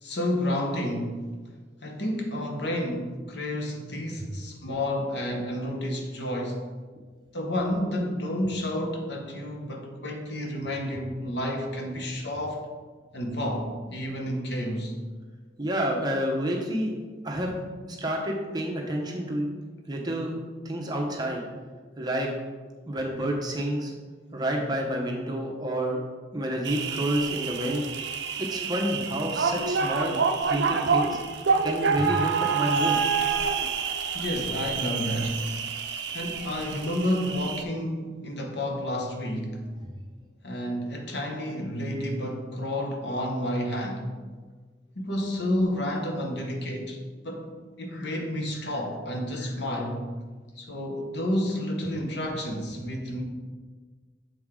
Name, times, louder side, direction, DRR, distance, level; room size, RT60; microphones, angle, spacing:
voice 1, 0.0-1.2 1.8-6.7 7.3-12.7 13.1-14.9 34.1-35.4 36.1-39.6 40.4-44.1 44.9-47.0 47.2-47.5 47.8-50.0 50.6-53.2, left 1 dB, 65° left, 2 dB, 1.0 m, -30 dB
voice 2, 15.6-16.9 17.2-17.5 17.9-19.5 19.9-20.4 20.6-21.4 22.0-22.3 22.9-23.9 24.3-26.0 26.3-27.8 28.4-30.2 30.5-31.2 31.6-32.9 39.8-39.9, right 1 dB, 20° right, -1 dB, 0.8 m, -29 dB
sound 1, 26.6-37.6, right 5 dB, 65° right, 0.5 m, -28 dB
7.1 x 4.7 x 3.7 m, 1.4 s
head